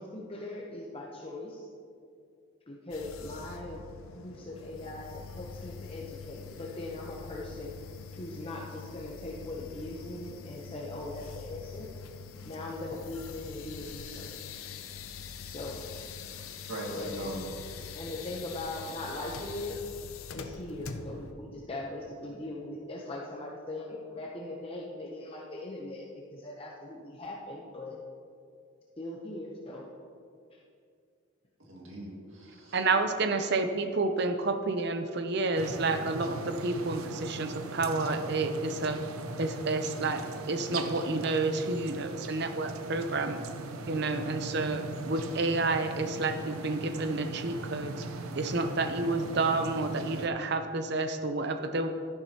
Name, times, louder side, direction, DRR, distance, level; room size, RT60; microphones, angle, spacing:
voice 1, 0.0-1.7 2.7-3.8 4.1-7.7 8.1-11.9 12.4-14.3 15.4-15.9 16.9-17.2 18.0-19.8 20.3-26.1 26.3-28.0 29.0-29.8, left 2 dB, 25° left, -2 dB, 0.7 m, -40 dB
sound 1, 2.9-21.3, left 5 dB, 80° left, 0.6 m, -44 dB
voice 2, 16.7-17.4 31.6-32.8 33.8-33.9, right 1 dB, 70° right, -2 dB, 2.2 m, -40 dB
voice 3, 32.7-39.0 39.4-43.4 43.9-47.9 48.4-51.9, right 3 dB, 50° right, 7 dB, 0.6 m, -30 dB
sound 2, 35.5-50.3, right 2 dB, 90° right, 0.7 m, -40 dB
12.0 x 10.5 x 2.9 m, 2.4 s
head